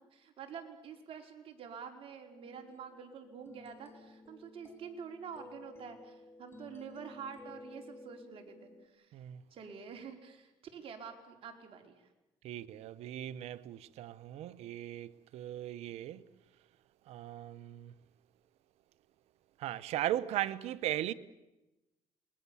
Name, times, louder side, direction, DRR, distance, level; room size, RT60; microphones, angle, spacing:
voice 1, 0.1-9.1 9.5-12.1, right 6 dB, 60° right, 4.6 m, -47 dB
sound 1, 2.4-8.9, left 2 dB, 20° left, 4.0 m, -54 dB
voice 2, 12.4-16.2 17.1-17.9 19.6-21.1, right 13 dB, 75° right, 0.9 m, -38 dB
28.0 x 22.0 x 7.2 m
supercardioid pair, 80°, 11 cm